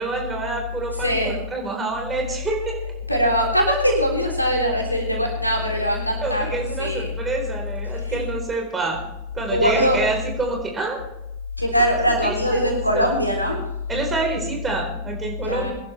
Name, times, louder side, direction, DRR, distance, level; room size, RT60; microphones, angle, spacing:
voice 1, 0.0-2.7 6.2-9.0 9.3-11.0 12.2-12.3 12.9-13.1 13.9-15.7, right 3 dB, 15° right, 1 dB, 4.2 m, -27 dB
voice 2, 1.0-1.4 3.1-7.1 7.9-8.3 9.5-10.0 11.6-13.6 15.4-15.7, equal, 90° left, 0 dB, 3.4 m, -21 dB
23.0 x 11.0 x 3.4 m, 0.87 s
figure-of-eight pair, 90°, 0 cm